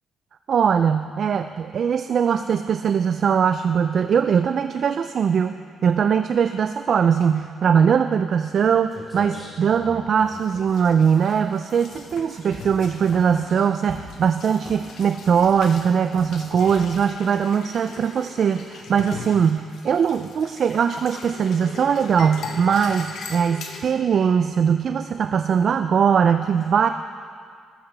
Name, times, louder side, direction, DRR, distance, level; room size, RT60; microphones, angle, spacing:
voice 1, 0.5-5.6 5.8-26.9, right 7 dB, 55° right, 9 dB, 0.3 m, -21 dB
sound 1, 8.6-8.7 8.9-11.5 11.9-12.2 12.5-13.5 13.9-14.2 14.6-15.0 15.4-15.8 16.1-16.4 16.8-17.1, equal, 10° left, 3.3 m, -41 dB
sound 2, 10.2-23.8, left 5 dB, 70° left, 1.1 m, -40 dB
18.0 x 7.8 x 3.3 m, 2.1 s
cardioid pair, 90°, 0 cm